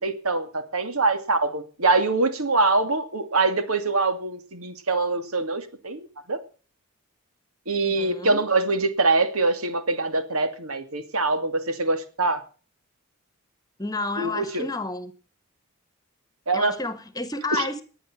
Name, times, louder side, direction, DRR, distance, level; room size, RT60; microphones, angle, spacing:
voice 1, 0.0-6.4 7.7-12.4 14.2-14.7 16.5-16.7, right 3 dB, 85° right, 2.5 m, -24 dB
voice 2, 7.8-8.4 13.8-15.1 16.5-17.8, left 3 dB, 15° left, 1.4 m, -31 dB
19.5 x 10.0 x 6.3 m
head